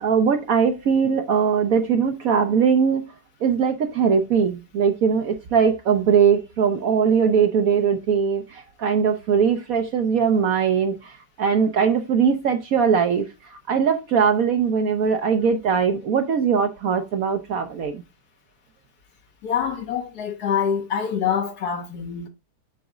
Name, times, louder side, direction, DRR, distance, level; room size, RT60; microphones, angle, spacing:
voice 1, 0.0-3.0 3.4-11.1 11.4-18.0, right 6 dB, 65° right, 1.1 m, -20 dB
voice 2, 19.4-22.3, left 7 dB, 70° left, 1.4 m, -25 dB
7.1 x 4.1 x 3.6 m
omnidirectional pair, 1.8 m